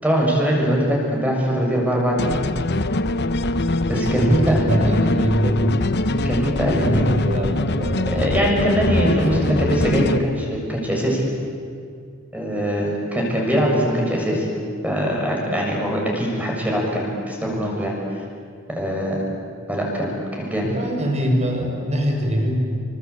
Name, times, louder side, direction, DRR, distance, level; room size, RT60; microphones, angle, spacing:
voice 1, 0.0-2.4 3.9-4.6 6.2-7.1 8.1-11.3 12.3-14.5 14.8-17.9 18.7-19.2 19.7-20.7, equal, 10° right, -2 dB, 7.1 m, -22 dB
sound 1, 2.2-10.2, left 2 dB, 55° left, 1.0 m, -23 dB
voice 2, 3.9-5.8 6.7-9.8 20.6-22.6, equal, 35° right, 2 dB, 5.5 m, -23 dB
28.0 x 24.5 x 8.4 m, 2.3 s
head